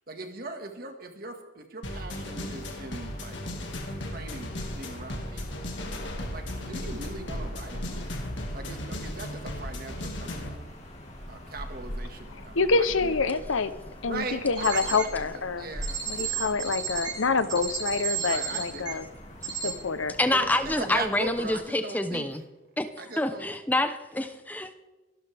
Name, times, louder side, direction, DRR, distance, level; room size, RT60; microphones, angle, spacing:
voice 1, 0.1-3.4 4.0-5.7 6.3-8.0 8.5-10.7 11.3-13.2 14.1-15.3 15.6-16.5 18.3-19.1 19.6-19.8 20.3-22.3 23.0-23.5, right 3 dB, 50° right, 5 dB, 1.8 m, -40 dB
sound 1, 1.8-10.6, left 1 dB, 65° left, 2.1 m, -36 dB
sound 2, 2.1-21.6, equal, 35° left, 2.9 m, -44 dB
voice 2, 12.5-13.7 14.0-15.7 16.1-19.0 19.6-20.1, left 4 dB, 80° left, 13 dB, 0.8 m, -26 dB
sound 3, 14.6-15.1 15.8-18.9 19.4-19.7, right 7 dB, 20° right, 3.9 m, -32 dB
voice 3, 20.2-22.4 22.8-22.9 23.2-24.7, left 1 dB, 10° left, 9 dB, 0.8 m, -27 dB
24.0 x 12.0 x 3.5 m, 1.1 s
head